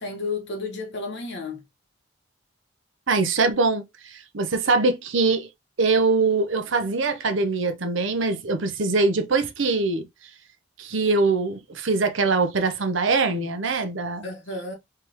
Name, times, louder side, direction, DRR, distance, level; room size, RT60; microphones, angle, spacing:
voice 1, 0.0-1.6 14.2-14.8, left 3 dB, 60° left, 1.3 m, -32 dB
voice 2, 3.1-5.5 5.8-10.1 10.8-14.3, right 3 dB, 65° right, 0.8 m, -23 dB
3.4 x 3.3 x 2.9 m
head